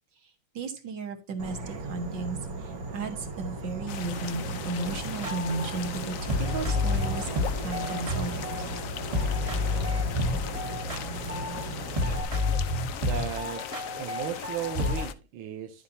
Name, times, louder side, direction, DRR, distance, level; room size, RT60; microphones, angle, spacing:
voice 1, 0.5-8.7, right 3 dB, 65° right, 2.2 m, -35 dB
Insect / Frog, 1.4-12.2, right 2 dB, 50° right, 1.6 m, -37 dB
sound 1, 3.9-15.1, left 9 dB, 70° left, 0.7 m, -39 dB
sound 2, 4.9-8.8 9.1-11.7 12.0-15.0, left 2 dB, 20° right, 1.1 m, -30 dB
voice 2, 13.0-13.6 14.0-15.8, right 8 dB, 85° right, 1.6 m, -35 dB
11.5 x 7.5 x 2.7 m
omnidirectional pair, 2.2 m